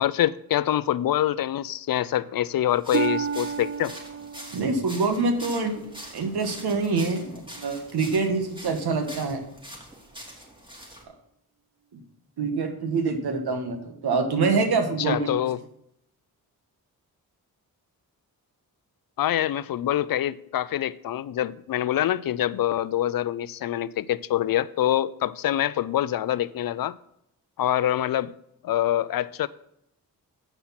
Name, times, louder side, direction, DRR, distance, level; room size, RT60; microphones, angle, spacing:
voice 1, 0.0-3.9 15.0-15.6 19.2-27.0 27.6-28.3 28.6-29.5, left 12 dB, 65° left, 0.5 m, -25 dB
sound 1, 2.7-11.0, equal, 15° right, 2.9 m, -44 dB
Harp, 2.9-6.7 7.2-7.6 8.3-8.4, right 7 dB, 35° right, 0.4 m, -32 dB
voice 2, 4.5-5.8 6.1-9.4 11.1-11.2 11.9-12.0 12.4-15.3, right 4 dB, 85° right, 1.5 m, -25 dB
8.0 x 5.9 x 5.7 m
cardioid pair, 60°, 38 cm